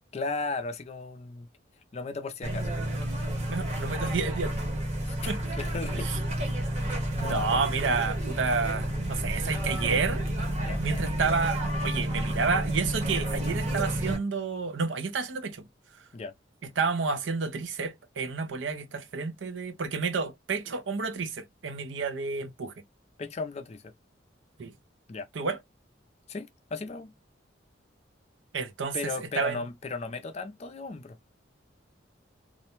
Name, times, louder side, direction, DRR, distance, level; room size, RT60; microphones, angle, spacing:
voice 1, 0.1-1.5 1.9-2.7 5.0-6.1 7.1-7.5 10.6-10.8 16.1-16.3 23.2-23.9 25.1-25.3 26.3-27.1 28.9-31.2, left 3 dB, 35° left, 0.4 m, -36 dB
sound 1, 2.4-14.2, right 1 dB, 35° right, 0.9 m, -30 dB
voice 2, 3.5-4.7 5.3-5.4 5.9-6.2 7.2-10.3 10.8-15.6 16.6-22.7 24.6-24.7 25.3-25.6 28.5-29.6, right 4 dB, 80° right, 0.6 m, -30 dB
2.5 x 2.1 x 2.8 m
head